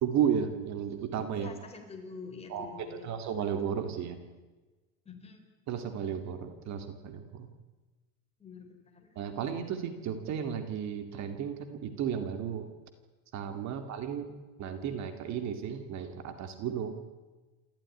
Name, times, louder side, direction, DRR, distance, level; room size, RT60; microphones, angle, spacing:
voice 1, 0.0-1.5 2.5-4.2 5.7-7.5 9.2-12.7 13.3-14.3 14.6-16.9, right 8 dB, 45° right, 8 dB, 2.2 m, -33 dB
voice 2, 1.3-3.4 5.1-5.4 8.4-9.1, left 4 dB, 15° left, 3 dB, 4.1 m, -46 dB
28.5 x 13.5 x 9.8 m, 1.2 s
supercardioid pair, 140°, 40 cm